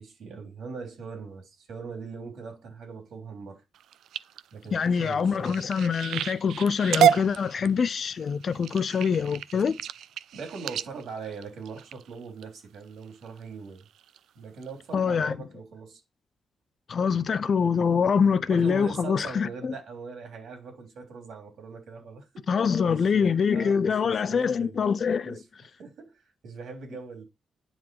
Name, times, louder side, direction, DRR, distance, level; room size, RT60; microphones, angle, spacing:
voice 1, 0.0-3.6 4.5-5.6 10.3-13.8 14.3-16.0 18.5-22.4 22.8-25.4 25.8-27.2, right 5 dB, 65° right, 3.3 m, -41 dB
sound 1, 3.7-12.4 13.0-13.4 13.8-14.2 14.6-14.7 15.0-15.1, right 10 dB, 85° right, 0.4 m, -30 dB
voice 2, 4.7-9.8 14.9-15.4 16.9-19.7 22.5-25.4, left 6 dB, 40° left, 0.4 m, -24 dB
9.3 x 3.9 x 4.6 m
wide cardioid pair, 165°, 0 cm